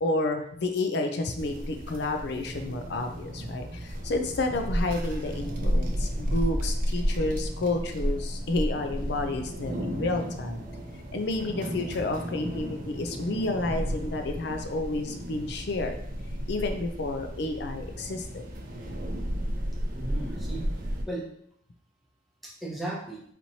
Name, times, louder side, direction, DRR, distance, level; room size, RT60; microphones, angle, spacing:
voice 1, 0.0-10.6 11.1-16.0 16.5-18.4, left 2 dB, 60° left, 5 dB, 0.5 m, -30 dB
sound 1, 1.4-21.0, equal, 50° right, 0.6 m, -33 dB
voice 2, 19.9-21.3 22.4-23.2, right 1 dB, ahead, -4 dB, 0.8 m, -36 dB
4.2 x 3.0 x 2.7 m, 0.67 s
head